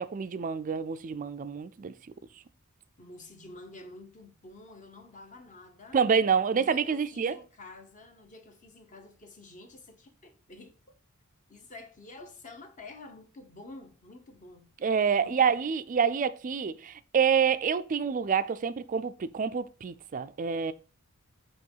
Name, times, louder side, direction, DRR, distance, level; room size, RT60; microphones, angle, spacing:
voice 1, 0.0-1.9 5.9-7.4 14.8-20.7, right 6 dB, 35° right, 0.4 m, -27 dB
voice 2, 3.0-6.0 6.5-10.7 11.5-14.7 15.2-15.5, left 2 dB, 35° left, 1.1 m, -49 dB
7.6 x 3.1 x 5.4 m
head